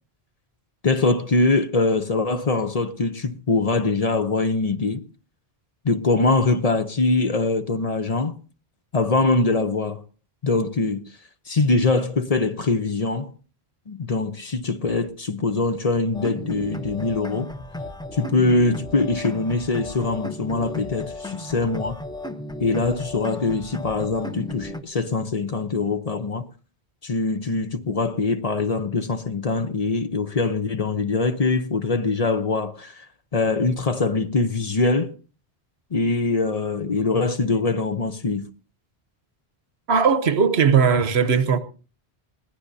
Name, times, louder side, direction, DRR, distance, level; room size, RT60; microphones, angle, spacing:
voice 1, 0.8-5.0 5.8-8.4 8.9-10.0 10.4-11.0 11.5-13.3 13.9-17.5 18.1-22.0 22.6-26.5 27.0-33.1 33.3-35.1 35.9-38.5, left 3 dB, 40° left, 0.8 m, -23 dB
sound 1, 16.1-24.8, left 1 dB, 5° left, 0.7 m, -34 dB
voice 2, 39.9-41.6, right 6 dB, 85° right, 1.2 m, -18 dB
21.5 x 16.5 x 2.7 m
omnidirectional pair, 1.0 m